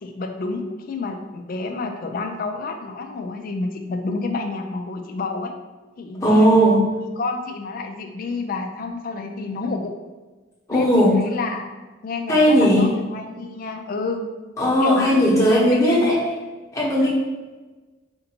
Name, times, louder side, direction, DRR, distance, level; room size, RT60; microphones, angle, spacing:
voice 1, 0.0-5.5 6.0-6.5 7.2-9.9 10.7-11.7 12.0-14.3 14.8-15.3 15.7-16.1 17.0-17.1, left 3 dB, 45° left, 5 dB, 0.4 m, -29 dB
voice 2, 6.2-6.8 10.7-11.2 12.3-12.8 14.6-16.2 16.7-17.1, equal, 15° left, -6 dB, 0.9 m, -16 dB
4.3 x 2.6 x 2.8 m, 1.2 s
head